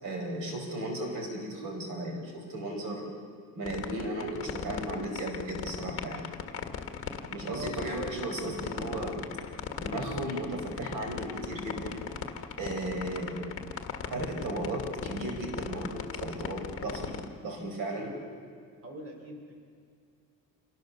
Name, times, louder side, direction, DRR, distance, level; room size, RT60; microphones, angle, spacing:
voice 1, 0.0-3.1 3.5-6.3 7.3-9.3 9.8-12.0 12.6-13.4 14.1-18.1, right 1 dB, 65° right, 2 dB, 5.0 m, -35 dB
sound 1, 3.6-17.3, left 8 dB, 40° left, 1.6 m, -37 dB
voice 2, 18.8-19.5, right 1 dB, 40° right, 2 dB, 4.7 m, -43 dB
28.0 x 19.5 x 6.8 m, 2.2 s
cardioid pair, 170°, 35 cm